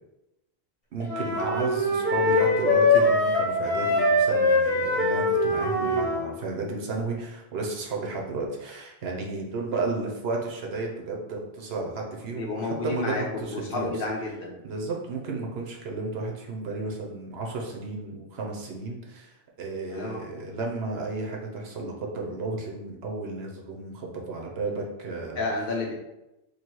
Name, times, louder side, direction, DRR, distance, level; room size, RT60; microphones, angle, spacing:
voice 1, 0.9-13.9 14.6-25.4, right 3 dB, 85° right, 0 dB, 1.0 m, -33 dB
sound 1, 1.1-6.2, left 2 dB, 35° left, 1.2 m, -23 dB
voice 2, 12.4-14.5 19.9-20.2 25.4-25.9, left 2 dB, 60° left, -1 dB, 1.0 m, -31 dB
3.1 x 2.7 x 4.4 m, 0.94 s
omnidirectional pair, 1.0 m